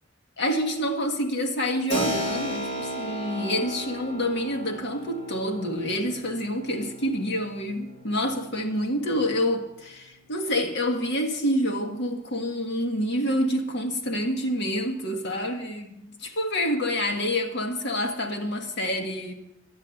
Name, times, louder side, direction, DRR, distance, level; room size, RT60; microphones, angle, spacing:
voice 1, 0.4-19.3, equal, 55° left, 1.5 m, -27 dB
Keyboard (musical), 1.9-10.3, equal, 40° left, 2.9 m, -35 dB
11.0 x 9.2 x 7.7 m
head